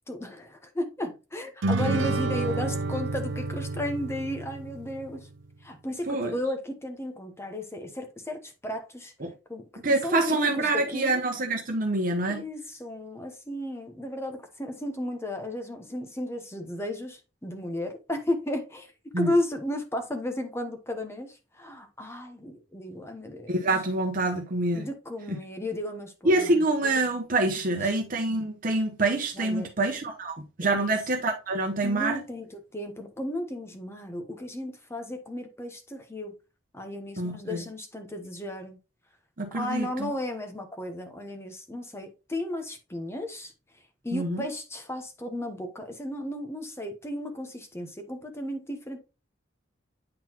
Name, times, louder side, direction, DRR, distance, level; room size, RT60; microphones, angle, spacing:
voice 1, 0.1-5.3 5.6-9.1 9.5-11.1 12.3-18.9 19.2-23.7 24.7-26.6 27.7-27.8 29.4-29.7 30.6-30.8 31.8-32.5 32.7-36.3 36.7-38.8 39.5-43.5 44.0-49.0, left 1 dB, 15° left, 0.9 m, -34 dB
sound 1, 1.6-5.2, right 3 dB, 85° right, 0.5 m, -29 dB
voice 2, 6.1-6.4 9.2-9.3 9.8-12.5 19.1-19.3 23.5-24.9 25.3-25.4 26.2-32.2 37.2-37.6 39.4-40.1 44.1-44.5, right 2 dB, 45° right, 0.9 m, -26 dB
8.8 x 3.9 x 2.9 m
head